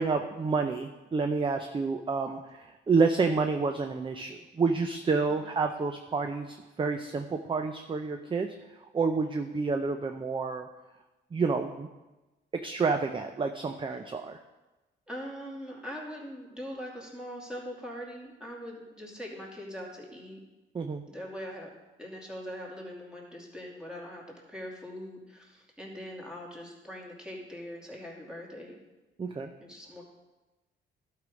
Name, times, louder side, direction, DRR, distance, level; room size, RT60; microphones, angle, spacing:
voice 1, 0.0-2.4 2.9-8.5 8.9-10.7 11.3-11.9 12.6-14.4 20.7-21.0 29.2-29.5, right 4 dB, 25° right, 6 dB, 0.6 m, -29 dB
voice 2, 15.1-20.4 21.1-21.7 22.0-24.2 24.5-28.8 29.6-30.1, equal, 5° right, -3 dB, 2.5 m, -42 dB
11.5 x 4.9 x 5.2 m, 1.1 s
cardioid pair, 90°, 20 cm